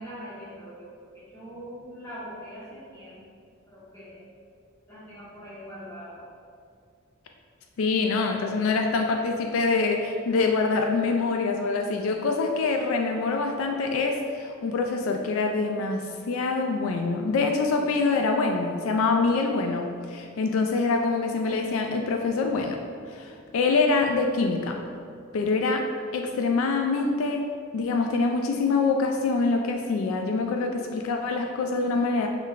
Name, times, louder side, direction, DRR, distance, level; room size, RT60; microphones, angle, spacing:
voice 1, 0.0-4.2 4.9-6.2, equal, 15° left, -10 dB, 1.2 m, -42 dB
voice 2, 7.8-22.8 23.1-24.8 25.3-25.8 26.1-27.4 27.7-32.3, left 3 dB, 75° left, 3 dB, 0.3 m, -25 dB
5.6 x 3.2 x 2.4 m, 2.3 s
head